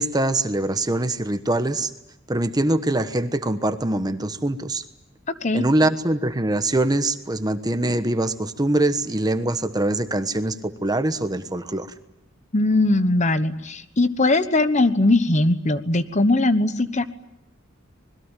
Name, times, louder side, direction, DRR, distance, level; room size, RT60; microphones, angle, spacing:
voice 1, 0.0-1.9 2.3-4.8 5.5-11.9, right 1 dB, 20° right, 10 dB, 1.2 m, -23 dB
voice 2, 12.5-17.0, left 2 dB, 35° left, 11 dB, 1.1 m, -20 dB
26.0 x 21.0 x 9.1 m, 0.82 s
head